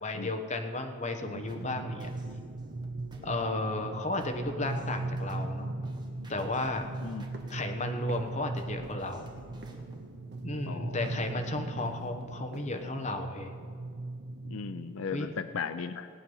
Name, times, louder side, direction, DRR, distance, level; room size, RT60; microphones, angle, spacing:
voice 1, 0.0-2.1 3.2-5.7 6.3-6.9 7.5-9.3 10.4-13.5 15.1-15.3, left 2 dB, 35° left, 4 dB, 1.1 m, -34 dB
sound 1, 1.2-15.3, right 2 dB, 75° right, 0.8 m, -38 dB
sound 2, 1.5-10.1, equal, 20° right, 1.3 m, -54 dB
sound 3, 6.6-6.8 7.3-7.6 8.1-8.3 8.8-9.1 9.6-9.9 10.3-10.7 11.0-11.3 11.8-12.2 12.5-12.7, right 1 dB, 55° right, 1.4 m, -48 dB
voice 2, 10.6-11.2 14.4-16.1, left 6 dB, 85° left, 11 dB, 0.5 m, -37 dB
17.5 x 9.2 x 5.5 m, 2.2 s
head